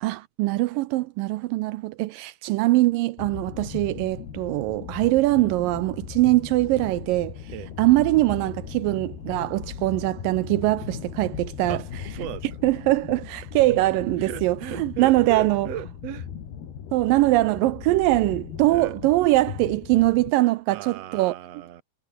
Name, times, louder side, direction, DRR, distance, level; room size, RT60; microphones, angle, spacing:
voice 1, 0.0-7.4 7.8-11.8 12.6-15.7 16.9-21.4, right 19 dB, 85° right, 1.9 m, -22 dB
sound 1, 3.2-20.3, left 8 dB, 70° left, 5.0 m, -38 dB
voice 2, 11.6-12.5 14.2-16.3 18.7-19.0 20.7-21.8, right 12 dB, 55° right, 2.1 m, -36 dB
omnidirectional pair, 4.7 m